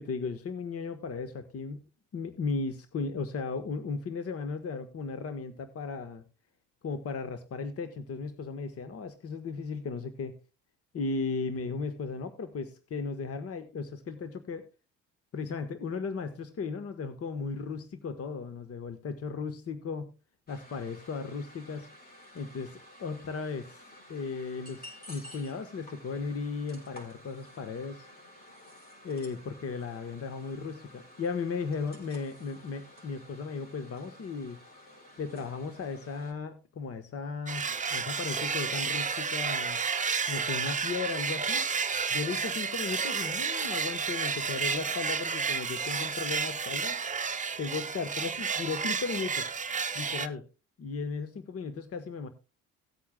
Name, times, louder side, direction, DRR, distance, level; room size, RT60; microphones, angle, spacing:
voice 1, 0.0-1.8 2.1-6.2 6.8-10.3 10.9-14.7 15.3-20.1 20.5-21.9 22.3-23.8 24.1-28.1 29.0-34.6 35.2-39.8 40.3-41.7 42.1-47.0 47.6-49.5 49.9-50.4 50.8-52.3, left 4 dB, 40° left, 9 dB, 1.2 m, -36 dB
sound 1, 20.5-36.3, left 1 dB, 25° left, 4.4 m, -52 dB
sound 2, 37.5-50.3, right 5 dB, 20° right, 0.9 m, -31 dB
17.5 x 8.4 x 2.2 m, 0.30 s
hypercardioid pair, 65°, 35 cm